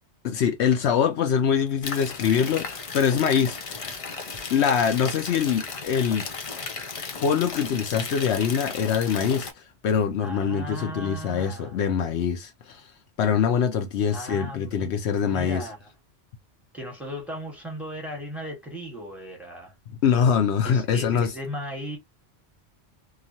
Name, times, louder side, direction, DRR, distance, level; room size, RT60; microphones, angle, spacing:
voice 1, 0.2-3.9 4.5-6.2 7.2-12.8 13.2-15.6 20.0-21.3, left 7 dB, 75° left, 0.8 m, -24 dB
sound 1, 1.8-9.5, left 4 dB, 45° left, 0.4 m, -35 dB
voice 2, 10.2-11.8 14.1-14.9 15.2-15.9 16.7-19.7 20.6-22.0, equal, ahead, 1.2 m, -37 dB
3.0 x 2.4 x 2.5 m
omnidirectional pair, 1.2 m